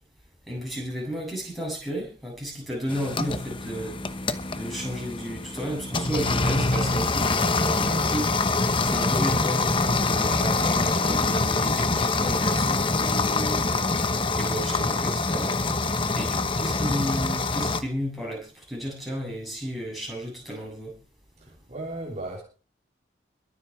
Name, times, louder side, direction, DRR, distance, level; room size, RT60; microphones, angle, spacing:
voice 1, 0.5-4.0 4.5-8.5 8.8-13.7 14.4-15.5 16.1-20.9, equal, ahead, 7.9 m, -33 dB
sound 1, 2.9-17.8, left 3 dB, 25° left, 0.9 m, -25 dB
voice 2, 21.4-22.4, right 2 dB, 35° right, 3.4 m, -36 dB
23.0 x 7.9 x 4.7 m
head